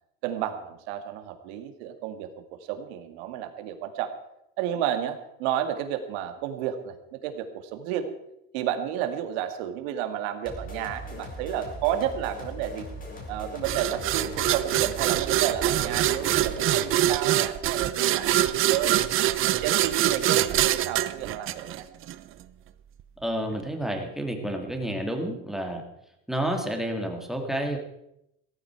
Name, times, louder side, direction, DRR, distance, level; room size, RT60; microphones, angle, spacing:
voice 1, 0.2-4.1 4.6-8.1 8.5-12.9 13.3-19.0 19.4-21.9, right 10 dB, 80° right, 8 dB, 2.2 m, -31 dB
sound 1, 10.5-17.0, equal, 25° left, 5.1 m, -39 dB
sound 2, 13.6-22.1, right 13 dB, 40° right, 0.8 m, -24 dB
voice 2, 23.2-25.8 26.3-27.8, right 1 dB, ahead, 3 dB, 2.5 m, -30 dB
17.0 x 14.5 x 4.7 m, 0.83 s
supercardioid pair, 135°, 32 cm